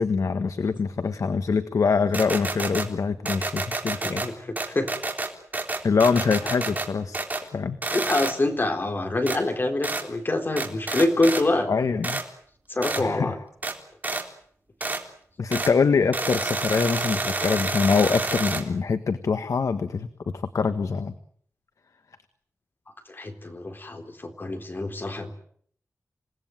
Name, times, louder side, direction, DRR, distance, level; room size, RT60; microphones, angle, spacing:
voice 1, 0.0-4.2 5.8-7.2 7.5-7.8 11.7-12.2 13.0-13.3 15.4-20.1 20.3-21.1, left 5 dB, 75° left, 10 dB, 1.5 m, -24 dB
sound 1, 2.1-2.9 3.3-4.3 4.6-6.9 7.1-7.5 7.8-8.3 9.3-9.4 9.8-10.0 10.6-11.4 12.0-12.2 12.8-13.0 13.6-13.7 14.0-14.2 14.8-15.0 15.5-15.7 16.1-18.6, right 2 dB, 30° right, 3.8 m, -29 dB
voice 2, 3.9-4.3 4.7-4.9 7.9-11.7 12.7-13.4 23.1-25.3, left 2 dB, 40° left, 6 dB, 3.9 m, -25 dB
28.0 x 18.5 x 9.3 m, 0.64 s
wide cardioid pair, 115°, 6 cm